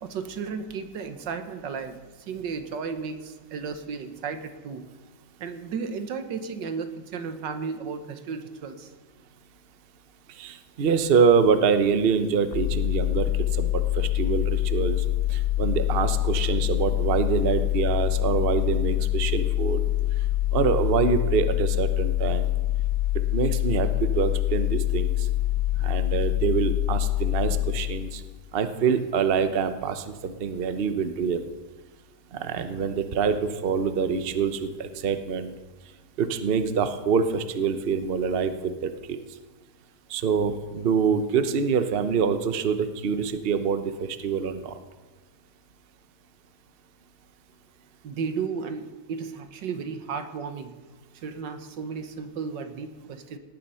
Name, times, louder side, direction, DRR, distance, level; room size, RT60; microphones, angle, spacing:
voice 1, 0.0-4.9 5.4-8.9 48.0-50.7 51.2-53.4, right 5 dB, 85° right, 9 dB, 1.8 m, -34 dB
voice 2, 10.4-15.0 15.3-19.8 20.5-22.5 23.3-25.1 25.8-28.2 28.5-31.4 32.3-35.5 36.2-39.2 40.1-44.8, right 6 dB, 40° right, 9 dB, 0.9 m, -25 dB
sound 1, 12.5-28.3, left 15 dB, 55° left, 0.7 m, -25 dB
17.5 x 10.5 x 5.6 m, 1.3 s
omnidirectional pair, 1.9 m